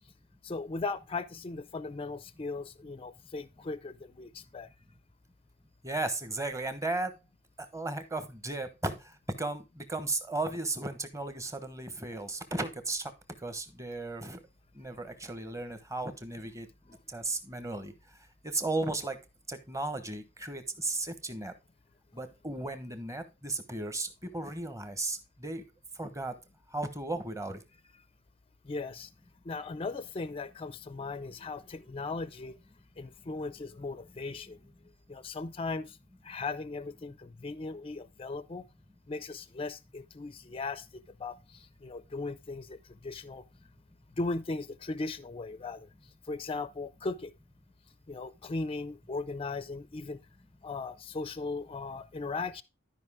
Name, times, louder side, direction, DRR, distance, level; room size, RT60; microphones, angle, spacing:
voice 1, 0.4-4.7 28.6-29.1 29.4-32.6 33.0-34.6 35.1-36.0 36.2-38.7 39.1-43.4 44.2-45.9 46.3-47.3 48.1-50.2 50.6-52.6, left 3 dB, 25° left, 0.5 m, -38 dB
voice 2, 5.8-7.1 7.7-9.0 9.4-13.1 13.4-14.4 14.7-16.7 17.1-17.9 18.4-19.2 19.5-21.5 22.1-24.1 24.3-25.6 26.0-26.3 26.7-27.6, right 2 dB, 15° right, 1.1 m, -35 dB
12.0 x 5.3 x 3.6 m
head